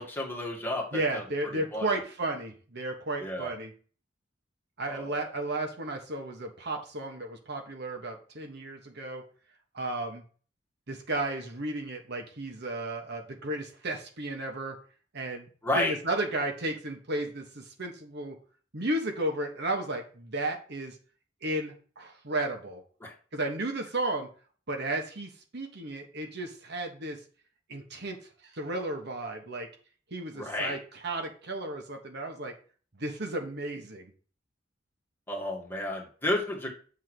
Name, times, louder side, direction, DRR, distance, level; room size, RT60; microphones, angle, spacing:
voice 1, 0.0-1.2 1.7-1.9 3.2-3.5 4.9-5.2 15.6-16.0 23.0-23.1 30.3-30.8 35.3-36.7, left 1 dB, 10° left, -2 dB, 1.9 m, -31 dB
voice 2, 0.9-3.7 4.8-9.2 9.7-10.2 10.9-14.8 15.1-15.5 15.7-18.4 18.7-20.9 21.4-22.8 23.3-24.3 24.7-27.2 27.7-28.2 28.5-29.7 30.1-32.5 33.0-34.1, right 2 dB, 60° right, 3 dB, 1.4 m, -33 dB
7.4 x 3.7 x 6.2 m, 0.40 s
head